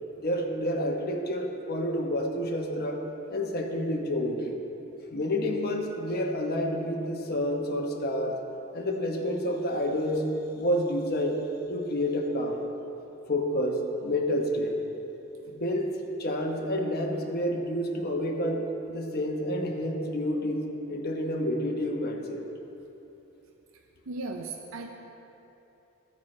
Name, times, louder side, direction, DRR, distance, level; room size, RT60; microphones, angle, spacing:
voice 1, 0.2-3.0 3.3-4.6 5.1-8.4 8.7-10.2 10.5-11.4 11.7-12.6 13.3-14.8 15.5-22.5, equal, 45° left, 1 dB, 1.1 m, -29 dB
voice 2, 24.1-24.9, right 3 dB, 70° right, 3 dB, 0.6 m, -36 dB
14.0 x 9.5 x 3.2 m, 3.0 s
head